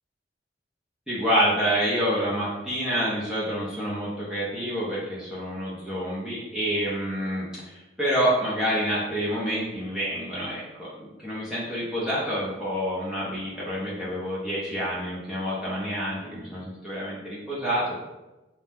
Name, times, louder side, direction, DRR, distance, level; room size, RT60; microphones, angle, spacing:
voice 1, 1.1-18.0, equal, 5° right, -9 dB, 0.5 m, -28 dB
2.7 x 2.1 x 3.4 m, 1.0 s
head